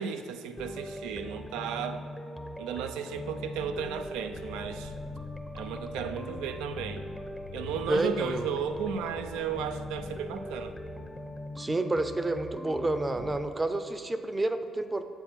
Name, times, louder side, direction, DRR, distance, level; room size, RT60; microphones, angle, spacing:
voice 1, 0.0-2.0 2.6-4.9 5.5-7.1 7.5-10.7, right 7 dB, 80° right, 8 dB, 0.4 m, -34 dB
sound 1, 0.6-13.4, left 1 dB, 10° left, 0.7 m, -41 dB
sound 2, 3.8-11.6, left 6 dB, 85° left, 0.4 m, -48 dB
voice 2, 7.9-8.5 11.6-15.0, right 2 dB, 25° right, 10 dB, 0.6 m, -29 dB
7.7 x 4.5 x 5.7 m, 2.3 s
hypercardioid pair, 50°, 0 cm